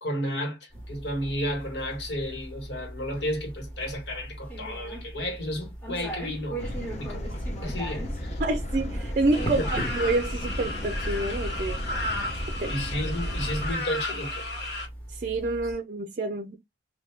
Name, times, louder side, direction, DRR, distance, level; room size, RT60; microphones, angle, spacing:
voice 1, 0.0-6.6 7.0-8.4 9.4-9.7 12.7-14.5, equal, 80° left, 1.5 m, -32 dB
sound 1, 0.7-15.7, right 1 dB, 10° left, 1.2 m, -39 dB
sound 2, 6.6-13.7, equal, 40° left, 0.6 m, -34 dB
voice 2, 8.4-11.8 12.6-12.8 15.1-16.6, right 2 dB, 50° right, 0.4 m, -28 dB
sound 3, 9.3-14.9, left 2 dB, 65° left, 1.5 m, -34 dB
2.9 x 2.7 x 3.3 m
head